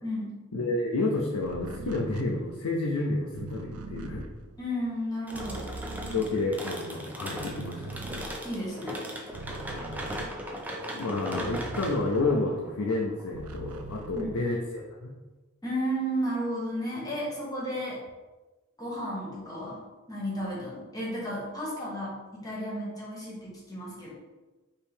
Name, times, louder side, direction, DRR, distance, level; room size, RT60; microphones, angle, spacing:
voice 1, 0.0-0.3 4.6-5.7 8.4-9.1 14.1-14.3 15.6-18.0 18.8-19.8 20.1-24.1, equal, 15° left, -5 dB, 1.2 m, -33 dB
voice 2, 0.5-4.2 6.1-7.9 9.7-10.0 10.9-15.1, left 2 dB, 90° left, -1 dB, 0.5 m, -30 dB
sound 1, 1.4-7.0 7.3-12.7 13.1-14.9, right 3 dB, 90° right, 0.4 m, -42 dB
sound 2, 5.3-13.9, equal, 5° right, 0.4 m, -38 dB
4.5 x 3.0 x 3.5 m, 1.2 s
head